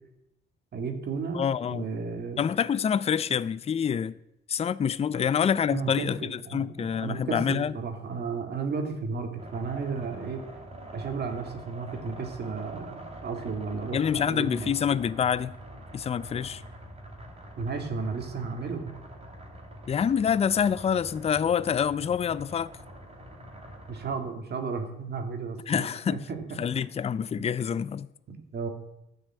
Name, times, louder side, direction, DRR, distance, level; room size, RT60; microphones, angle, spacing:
voice 1, 0.7-2.4 5.1-5.3 5.7-10.4 10.9-14.7 17.6-19.0 23.9-26.6 27.4-27.5 28.3-28.7, right 5 dB, 55° right, 2.0 m, -34 dB
voice 2, 1.3-1.9 2.4-4.1 4.5-7.7 13.9-15.6 15.9-16.6 19.9-22.7 25.7-26.2 26.6-28.1, left 8 dB, 30° left, 0.4 m, -26 dB
sound 1, 9.4-24.2, right 1 dB, 30° right, 3.1 m, -45 dB
12.5 x 5.4 x 8.5 m
cardioid pair, 90°, 20 cm